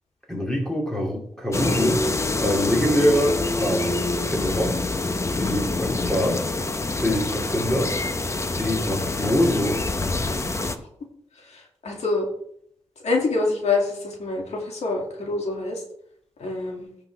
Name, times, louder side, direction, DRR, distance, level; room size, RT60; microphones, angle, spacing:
voice 1, 0.3-2.0 2.4-3.9 4.3-4.8 5.4-6.4 6.9-7.9 8.6-9.8, equal, 5° left, -1 dB, 2.6 m, -24 dB
sound 1, 1.5-10.8, left 2 dB, 25° left, 0.7 m, -26 dB
voice 2, 11.5-12.3 13.0-15.8 16.4-16.9, left 3 dB, 85° left, -1 dB, 2.3 m, -26 dB
16.5 x 6.0 x 3.4 m, 0.69 s
wide cardioid pair, 135°, 11 cm